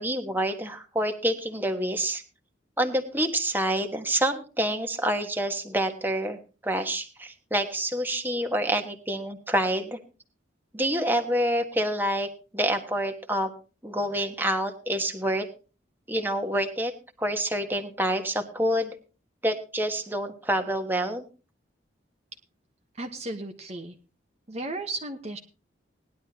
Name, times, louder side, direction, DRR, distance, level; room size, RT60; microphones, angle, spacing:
voice 1, 0.0-2.2 2.8-10.0 10.7-13.5 13.8-15.5 16.1-16.9 17.2-18.9 19.4-21.2, right 1 dB, 10° right, 5 dB, 1.4 m, -27 dB
voice 2, 23.0-23.9 24.5-25.4, right 2 dB, 35° right, 4 dB, 1.1 m, -34 dB
18.5 x 11.0 x 2.9 m, 0.33 s
head